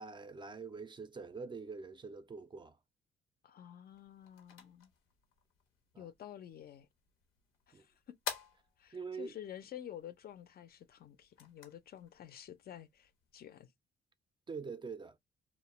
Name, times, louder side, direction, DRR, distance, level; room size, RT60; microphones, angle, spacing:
voice 1, 0.0-2.8 5.9-6.1 7.7-7.9 8.9-9.4 14.5-15.2, right 4 dB, 25° right, 0.3 m, -44 dB
voice 2, 3.4-4.9 6.0-6.9 7.7-8.2 8.8-13.7, left 10 dB, 50° left, 0.4 m, -50 dB
sound 1, 3.9-13.6, left 6 dB, 90° left, 0.8 m, -51 dB
2.2 x 2.1 x 2.8 m
cardioid pair, 90°, 20 cm